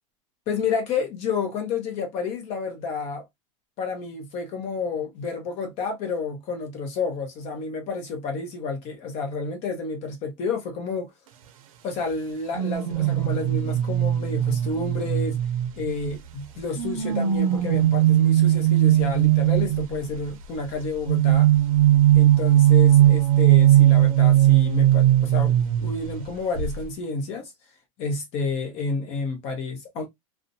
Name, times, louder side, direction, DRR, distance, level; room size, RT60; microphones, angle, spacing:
voice 1, 0.5-3.2 3.8-11.1 11.8-15.4 15.8-21.5 22.1-27.5 28.0-30.1, left 4 dB, 40° left, 0.8 m, -30 dB
sound 1, 12.5-16.2 16.8-20.0 21.1-26.3 26.6-26.8, right 13 dB, 85° right, 0.5 m, -19 dB
2.4 x 2.1 x 2.6 m
supercardioid pair, 145°, 17 cm